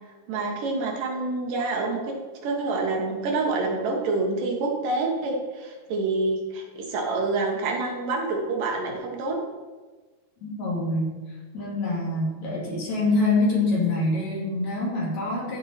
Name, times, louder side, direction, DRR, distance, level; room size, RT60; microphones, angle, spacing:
voice 1, 0.3-2.1 2.4-9.4, right 3 dB, 75° right, 1 dB, 2.8 m, -27 dB
voice 2, 10.4-11.2 11.5-15.6, left 2 dB, 55° left, -4 dB, 3.4 m, -25 dB
14.0 x 5.4 x 4.2 m, 1.3 s
omnidirectional pair, 3.9 m